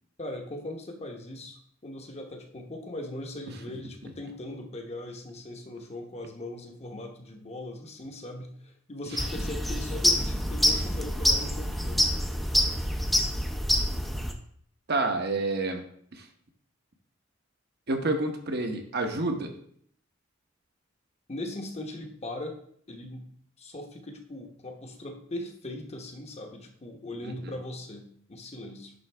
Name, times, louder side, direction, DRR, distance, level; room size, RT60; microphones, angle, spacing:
voice 1, 0.2-12.2 21.3-22.6 22.9-23.3 23.6-28.9, left 1 dB, 30° left, 3 dB, 0.9 m, -39 dB
sound 1, 9.2-14.3, equal, ahead, 0.5 m, -26 dB
voice 2, 14.9-15.8 16.1-16.2 17.9-19.5 27.2-27.5, right 2 dB, 55° right, 4 dB, 0.9 m, -29 dB
10.5 x 3.8 x 3.3 m, 0.64 s
head